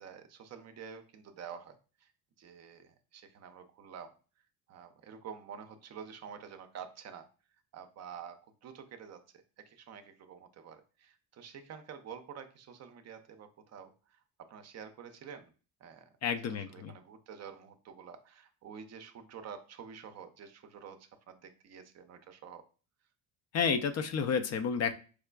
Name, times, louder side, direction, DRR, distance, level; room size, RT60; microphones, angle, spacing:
voice 1, 0.0-2.1 2.4-4.1 4.7-7.3 7.7-9.2 9.6-15.5 15.8-16.1 16.4-22.6, right 7 dB, 45° right, 8 dB, 0.5 m, -49 dB
voice 2, 16.2-16.9 23.5-24.9, left 6 dB, 45° left, 9 dB, 0.4 m, -30 dB
4.6 x 2.4 x 2.2 m, 0.36 s
cardioid pair, 105°, 37 cm